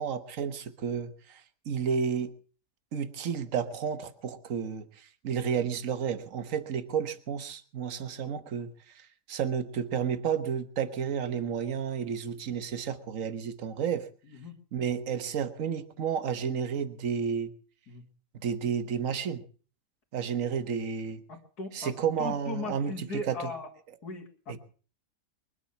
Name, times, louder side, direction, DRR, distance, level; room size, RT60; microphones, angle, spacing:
voice 1, 0.0-1.4 1.7-2.3 2.9-8.7 9.0-14.1 14.7-17.5 18.3-19.4 20.1-21.2 21.7-23.5 24.5-24.6, right 7 dB, 55° right, 12 dB, 1.5 m, -31 dB
voice 2, 21.3-23.7 24.0-24.6, left 3 dB, 65° left, 2 dB, 3.0 m, -38 dB
23.5 x 8.5 x 7.2 m, 0.42 s
omnidirectional pair, 1.8 m